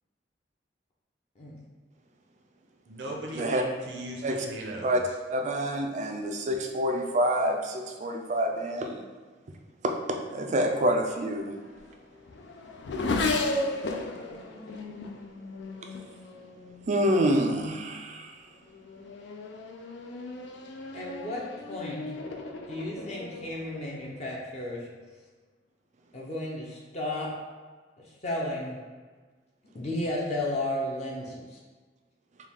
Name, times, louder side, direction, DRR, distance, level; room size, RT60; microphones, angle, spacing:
voice 1, 2.9-5.0, right 1 dB, 75° right, 0 dB, 0.7 m, -37 dB
voice 2, 5.3-9.0 9.8-11.5 16.9-18.3, equal, 40° right, 3 dB, 0.4 m, -27 dB
Race car auto racing / Accelerating revving vroom, 11.2-17.1 17.9-18.3 18.7-24.6, left 2 dB, 70° left, 0.4 m, -35 dB
voice 3, 20.9-22.0 22.7-24.8 26.1-27.3 28.2-28.8 29.7-31.6, left 1 dB, 40° left, -4 dB, 0.7 m, -33 dB
4.6 x 2.3 x 3.5 m, 1.4 s
head